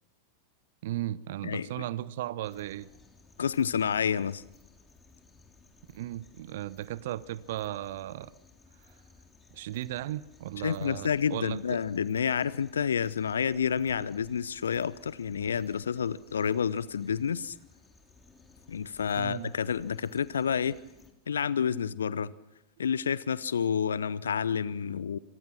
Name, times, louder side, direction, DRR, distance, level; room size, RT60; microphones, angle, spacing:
voice 1, 0.8-2.9 5.9-8.3 9.5-11.8 19.2-19.5, right 14 dB, 55° right, 0.9 m, -36 dB
sound 1, 2.4-21.1, left 3 dB, 15° left, 3.3 m, -59 dB
voice 2, 3.4-4.4 10.6-17.5 18.7-20.8 21.3-22.3 22.8-25.2, left 7 dB, 70° left, 0.8 m, -29 dB
26.0 x 25.0 x 6.1 m
figure-of-eight pair, 90°, 0 cm